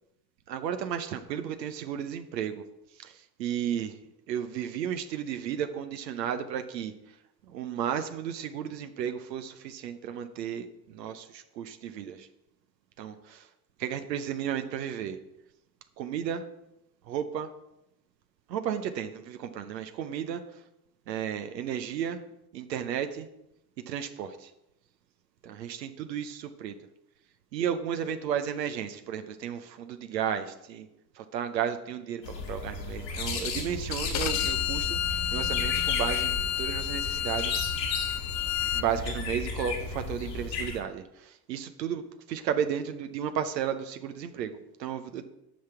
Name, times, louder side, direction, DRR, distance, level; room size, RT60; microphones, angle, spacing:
voice 1, 0.5-2.6 3.0-3.1 3.4-4.0 4.3-6.9 7.5-12.3 13.0-13.4 13.8-15.2 16.0-16.4 17.1-17.5 18.5-20.4 21.1-22.2 22.5-23.3 23.9-24.5 25.4-26.8 27.5-30.9 31.2-35.0 35.3-37.6 38.7-42.0 42.3-45.2, right 9 dB, 80° right, 9 dB, 0.8 m, -33 dB
sound 1, 32.2-40.8, left 4 dB, 75° left, 2.1 m, -34 dB
Bowed string instrument, 34.1-38.9, left 11 dB, 35° left, 0.5 m, -30 dB
10.0 x 6.0 x 5.7 m, 0.86 s
figure-of-eight pair, 55°, 49 cm